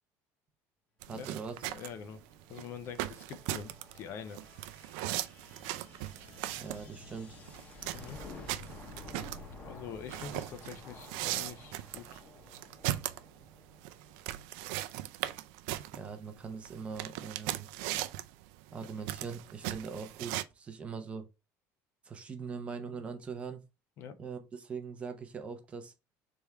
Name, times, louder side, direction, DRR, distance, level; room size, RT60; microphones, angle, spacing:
sound 1, 1.0-20.4, right 15 dB, 90° right, 0.4 m, -39 dB
voice 1, 1.1-1.6 6.6-7.4 15.9-17.7 18.7-21.2 22.0-23.6 24.2-25.9, right 5 dB, 20° right, 0.6 m, -41 dB
voice 2, 1.7-2.2 2.5-4.4 7.9-8.2 9.6-12.2 18.8-18.9 24.0-24.2, left 7 dB, 40° left, 0.5 m, -45 dB
sound 2, 1.8-15.2, left 3 dB, 20° left, 0.9 m, -52 dB
3.5 x 3.4 x 4.4 m
cardioid pair, 180°, 6 cm